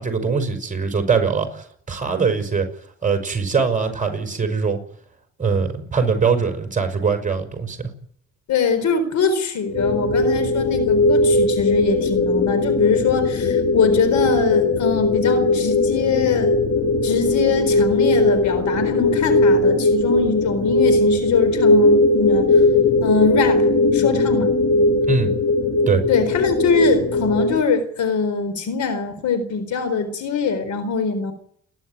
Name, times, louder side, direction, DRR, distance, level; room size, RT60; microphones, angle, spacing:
voice 1, 0.0-2.7 3.0-4.8 5.4-7.8 25.1-25.3 25.9-26.0, right 5 dB, 25° right, 5 dB, 5.9 m, -22 dB
voice 2, 8.5-16.5 17.0-22.5 23.0-23.7 23.9-24.6 26.1-31.3, left 5 dB, 70° left, 12 dB, 4.2 m, -22 dB
sound 1, 9.7-27.6, left 2 dB, 40° left, 1.7 m, -18 dB
29.0 x 11.5 x 9.6 m, 0.65 s
cardioid pair, 90°, 30 cm